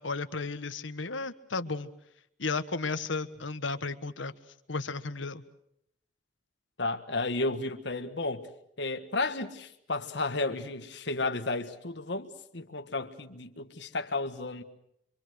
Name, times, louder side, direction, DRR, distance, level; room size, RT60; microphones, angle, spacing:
voice 1, 0.0-1.9 2.4-4.3 4.7-5.4, left 3 dB, 80° left, 1.3 m, -34 dB
voice 2, 6.8-8.5 8.8-14.6, left 2 dB, 65° left, 1.7 m, -33 dB
26.5 x 25.0 x 6.5 m
head